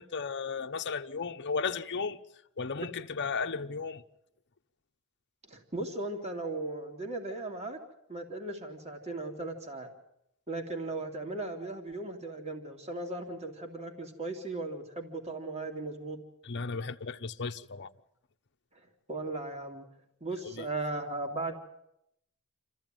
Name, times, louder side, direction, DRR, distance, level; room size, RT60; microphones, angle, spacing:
voice 1, 0.0-2.2 2.6-4.0 16.4-17.9 20.4-20.7, left 5 dB, 55° left, 1.0 m, -35 dB
voice 2, 5.5-7.8 8.1-9.9 10.5-16.2 18.7-19.8 20.2-21.6, right 2 dB, 30° right, 2.7 m, -37 dB
27.5 x 15.0 x 9.1 m
head